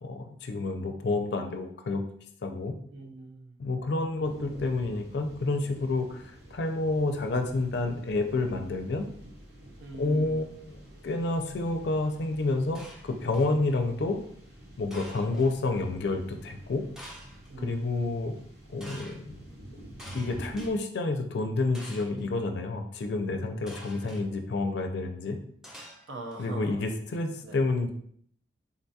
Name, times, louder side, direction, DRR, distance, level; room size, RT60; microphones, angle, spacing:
voice 1, 0.0-2.0 2.4-2.7 3.6-9.1 10.0-10.8 11.0-14.2 14.8-16.9 17.6-18.4 18.7-19.4 20.1-25.4 26.4-27.9, left 3 dB, 65° left, 5 dB, 0.4 m, -29 dB
voice 2, 2.9-3.6 9.8-10.5 13.7-13.8 17.5-18.1 24.0-24.2 26.1-26.9 27.4-27.7, right 2 dB, 75° right, 2 dB, 0.6 m, -42 dB
sound 1, 4.2-20.7, right 1 dB, 60° right, 1.0 m, -48 dB
sound 2, 12.8-13.6 14.9-15.5 17.0-17.5 18.8-19.2 20.0-20.7 21.7-22.2 23.7-24.2 25.6-26.4, equal, 5° right, 0.5 m, -47 dB
3.8 x 2.3 x 2.7 m, 0.63 s
head